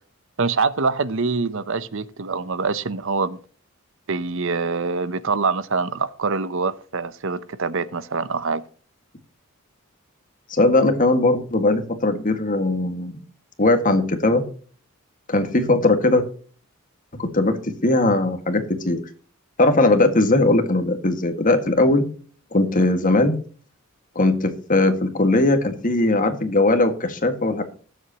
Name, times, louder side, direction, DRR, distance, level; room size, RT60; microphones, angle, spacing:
voice 1, 0.4-3.4 4.1-8.6, right 4 dB, 60° right, 0.8 m, -24 dB
voice 2, 10.5-13.2 13.6-14.4 15.3-16.2 17.1-19.0 19.6-22.1 22.5-23.4 24.2-27.6, left 2 dB, 40° left, 1.9 m, -19 dB
19.5 x 7.9 x 2.9 m
head